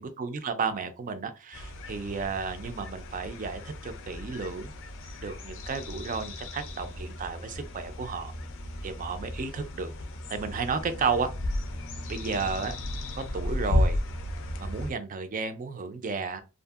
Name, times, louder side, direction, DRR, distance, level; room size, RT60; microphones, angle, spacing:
voice 1, 0.0-4.7 5.2-8.3 8.8-9.9 10.3-11.3 12.1-12.8 13.2-14.0 14.6-16.4, right 5 dB, 35° right, 0.4 m, -32 dB
sound 1, 1.5-14.9, left 1 dB, 60° left, 0.5 m, -34 dB
2.6 x 2.5 x 2.3 m
head